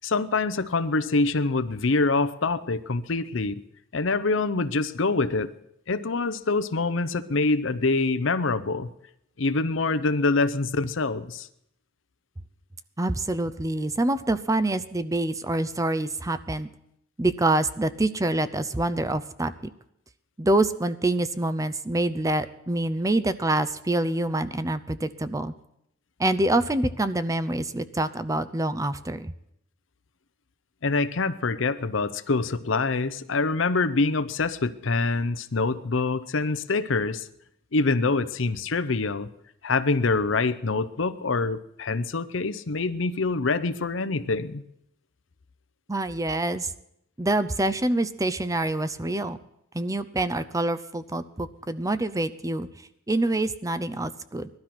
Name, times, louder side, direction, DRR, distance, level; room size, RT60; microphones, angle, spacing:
voice 1, 0.0-3.5 3.9-5.5 5.9-8.9 9.4-11.5 30.8-37.3 37.7-39.3 39.6-44.6, left 3 dB, 70° left, 13 dB, 0.8 m, -25 dB
voice 2, 13.0-16.7 17.2-19.5 20.4-25.5 26.2-29.3 45.9-46.7 47.2-49.4 49.7-52.7 53.1-54.5, right 2 dB, 15° right, 12 dB, 0.6 m, -26 dB
18.5 x 12.5 x 6.0 m, 0.78 s
head